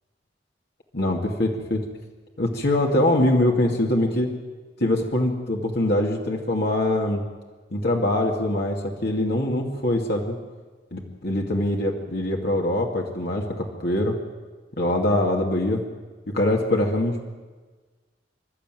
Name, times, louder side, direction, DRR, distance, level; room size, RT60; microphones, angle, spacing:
voice 1, 0.9-1.8 2.4-4.3 4.8-7.2 7.7-10.4 10.9-14.1 14.8-15.8 16.3-17.2, left 1 dB, 65° left, 0 dB, 2.4 m, -23 dB
27.0 x 13.0 x 9.2 m, 1.4 s
head